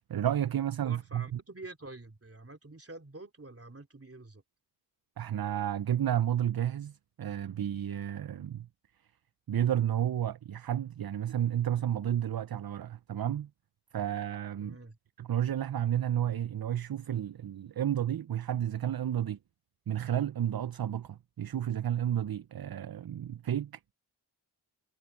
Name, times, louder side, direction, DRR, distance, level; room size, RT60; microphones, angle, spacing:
voice 1, 0.0-1.4 5.2-8.7 9.5-13.5 13.9-14.8 15.2-19.4 19.9-23.9, right 10 dB, 55° right, 0.6 m, -31 dB
voice 2, 0.8-4.4 14.6-15.0, right 2 dB, 30° right, 3.3 m, -47 dB
wide cardioid pair, 95°, 43 cm